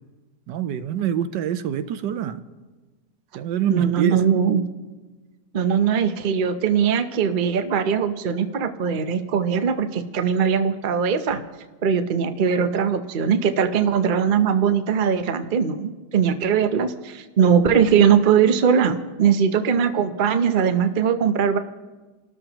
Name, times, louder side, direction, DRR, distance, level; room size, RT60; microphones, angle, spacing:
voice 1, 0.5-2.4 3.3-4.2, right 9 dB, 80° right, 11 dB, 1.3 m, -25 dB
voice 2, 3.7-4.6 5.5-11.4 11.8-21.6, right 7 dB, 45° right, 8 dB, 0.7 m, -20 dB
29.5 x 13.0 x 3.0 m, 1.2 s
omnidirectional pair, 1.9 m